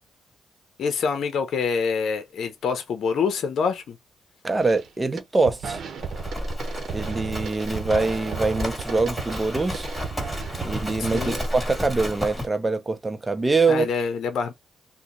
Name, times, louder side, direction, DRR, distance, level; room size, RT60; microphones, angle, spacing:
voice 1, 0.8-4.0 11.0-11.4 13.7-14.5, left 5 dB, 70° left, 0.7 m, -26 dB
voice 2, 4.4-5.8 6.9-9.9 10.6-13.9, right 3 dB, 20° right, 0.6 m, -24 dB
sound 1, 4.6-4.9 5.2-11.5, right 6 dB, 65° right, 0.9 m, -35 dB
Livestock farm animals working animals, 6.0-12.5, left 1 dB, 5° left, 1.9 m, -32 dB
2.8 x 2.2 x 3.8 m
cardioid pair, 80°, 0 cm